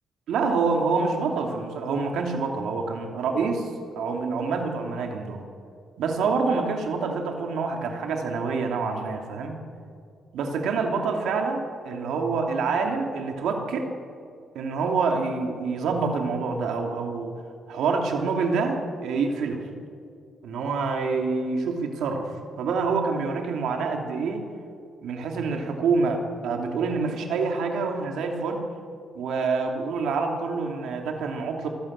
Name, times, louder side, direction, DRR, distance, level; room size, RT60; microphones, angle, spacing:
voice 1, 0.3-5.4 6.0-9.6 10.3-13.9 14.5-17.4 17.7-19.6 20.4-24.5 25.0-28.6 29.1-31.7, right 4 dB, 75° right, 3 dB, 2.8 m, -27 dB
26.5 x 13.0 x 8.8 m, 2.3 s
cardioid pair, 180°, 0 cm